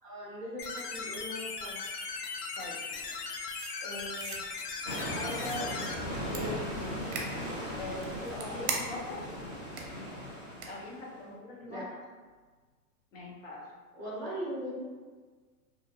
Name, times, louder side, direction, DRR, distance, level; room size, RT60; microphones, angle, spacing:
voice 1, 0.0-1.7 11.7-11.9 14.0-14.8, equal, 10° left, -8 dB, 0.7 m, -39 dB
sound 1, 0.6-5.9, left 4 dB, 85° left, 0.6 m, -38 dB
sound 2, 3.5-4.4 5.4-5.8 6.3-6.4 7.1-7.3 8.0-9.1 9.8-9.9 10.6-10.7, right 5 dB, 50° right, 0.5 m, -38 dB
voice 2, 3.8-6.9 7.8-9.2 10.6-11.9 13.1-13.6, left 2 dB, 55° left, -4 dB, 1.0 m, -42 dB
sound 3, 4.8-11.2, equal, 35° left, 1.0 m, -38 dB
2.5 x 2.2 x 2.7 m, 1.4 s
supercardioid pair, 150°, 46 cm